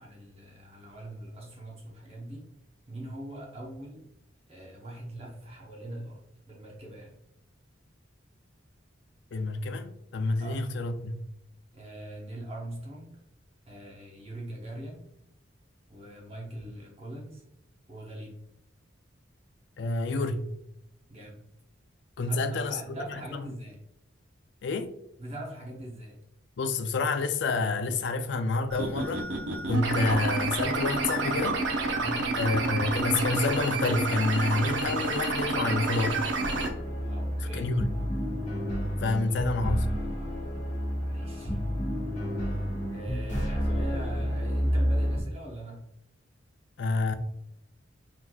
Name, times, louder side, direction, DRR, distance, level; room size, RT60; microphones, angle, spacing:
voice 1, 0.0-2.5 2.9-4.0 4.5-6.2 6.5-7.2 10.4-10.6 11.7-13.2 13.7-15.1 15.9-17.4 17.9-18.4 21.1-21.4 22.3-23.8 25.2-26.2 32.0-32.3 37.0-37.7 39.3-39.4 41.0-41.6 42.9-45.8, right 1 dB, 30° right, 0.9 m, -42 dB
voice 2, 9.3-11.2 19.8-20.5 22.2-22.8 23.1-23.5 24.6-24.9 26.6-29.3 29.7-31.6 32.3-36.2 37.5-38.0 39.0-40.0 46.8-47.1, left 3 dB, 60° left, 0.4 m, -28 dB
sound 1, 28.7-36.7, right 3 dB, 75° right, 0.7 m, -29 dB
sound 2, 36.4-45.2, equal, 40° left, 1.3 m, -30 dB
4.5 x 3.9 x 2.3 m
head